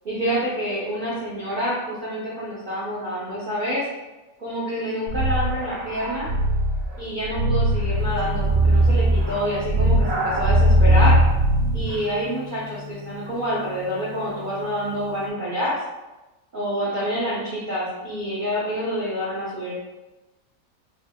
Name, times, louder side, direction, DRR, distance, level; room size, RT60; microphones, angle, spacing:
voice 1, 0.0-3.9 4.4-6.3 7.0-11.2 11.7-15.7 16.5-19.7, equal, 70° right, -8 dB, 0.4 m, -27 dB
sound 1, 5.1-12.0, right 1 dB, 55° right, 0.8 m, -20 dB
Gong, 7.9-15.3, left 9 dB, 60° left, 0.7 m, -40 dB
5.3 x 2.1 x 2.2 m, 1.1 s
omnidirectional pair, 1.8 m